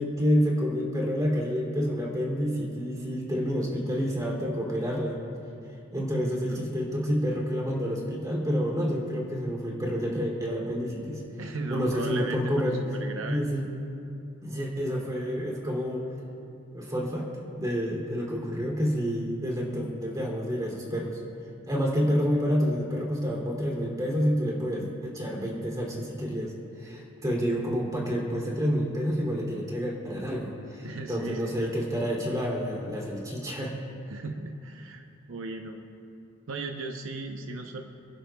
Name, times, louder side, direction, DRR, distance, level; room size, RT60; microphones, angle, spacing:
voice 1, 0.0-5.2 5.9-11.2 11.7-12.8 13.3-13.6 14.4-16.1 16.7-17.3 17.5-21.2 21.7-26.5 26.8-33.7, equal, 20° right, -2 dB, 2.8 m, -28 dB
voice 2, 6.1-6.7 11.4-13.7 30.8-31.7 34.1-35.8 36.5-37.8, right 3 dB, 80° right, 4 dB, 0.8 m, -37 dB
29.0 x 11.5 x 2.3 m, 2.7 s
head